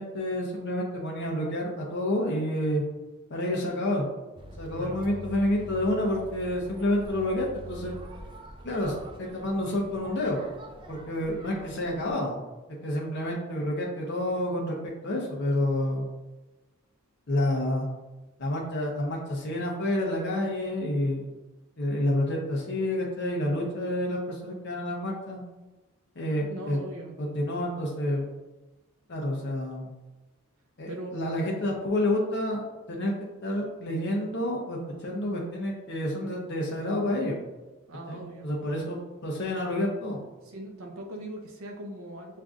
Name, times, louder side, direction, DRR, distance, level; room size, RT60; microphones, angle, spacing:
voice 1, 0.0-2.8 3.3-4.1 4.6-7.9 8.6-10.4 10.9-12.4 12.8-16.1 17.3-17.9 18.4-21.3 21.8-25.4 26.2-26.8 27.2-28.2 29.1-29.9 30.8-32.6 32.9-33.1 33.4-37.4 38.1-40.2, left 1 dB, 50° left, -2 dB, 0.7 m, -29 dB
sound 1, 4.4-12.1, equal, 20° right, 0.4 m, -44 dB
voice 2, 26.5-27.2 30.9-31.2 37.9-38.5 40.4-42.4, right 1 dB, 70° right, 2 dB, 0.6 m, -40 dB
7.3 x 2.5 x 2.4 m, 1.1 s
head